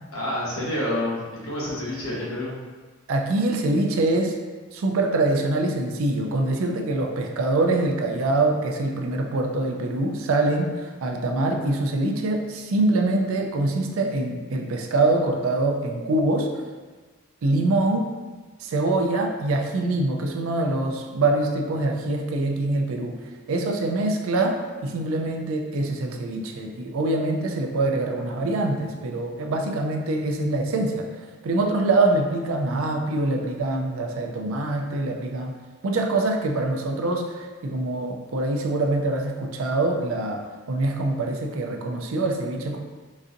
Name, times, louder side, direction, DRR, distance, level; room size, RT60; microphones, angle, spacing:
voice 1, 0.1-2.6, left 1 dB, 80° left, -6 dB, 1.1 m, -28 dB
voice 2, 3.1-4.3 4.7-16.5 17.4-18.1 18.6-23.1 23.5-31.1 31.4-35.6 35.8-42.8, right 2 dB, 70° right, 3 dB, 0.4 m, -24 dB
3.9 x 2.5 x 2.5 m, 1.3 s
head